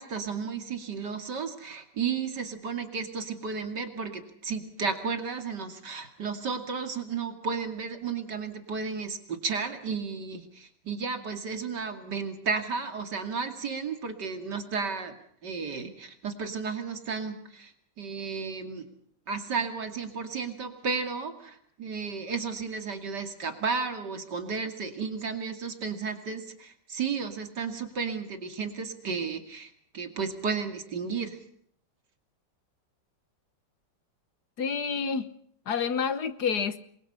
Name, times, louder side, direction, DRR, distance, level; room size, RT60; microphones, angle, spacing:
voice 1, 0.0-15.2 15.4-17.7 18.0-18.9 19.3-31.4, right 5 dB, 65° right, 3.0 m, -33 dB
voice 2, 34.6-35.3 35.7-36.8, left 6 dB, 60° left, 1.7 m, -28 dB
28.5 x 23.0 x 5.7 m
omnidirectional pair, 2.0 m